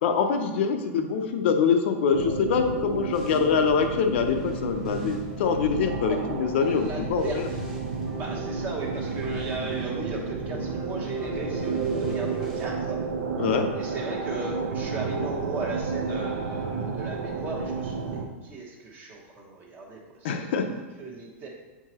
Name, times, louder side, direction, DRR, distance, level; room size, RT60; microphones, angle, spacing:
voice 1, 0.0-7.5 13.4-13.7 20.2-20.7, left 6 dB, 55° left, 5 dB, 0.6 m, -24 dB
sound 1, 2.1-18.3, right 4 dB, 80° right, 0.7 m, -31 dB
sound 2, 3.1-12.6, right 1 dB, 5° right, 1.2 m, -42 dB
voice 2, 6.7-7.7 8.1-13.0 13.7-21.5, right 3 dB, 25° right, -1 dB, 1.0 m, -37 dB
7.4 x 4.7 x 2.9 m, 1.2 s
supercardioid pair, 160°, 7 cm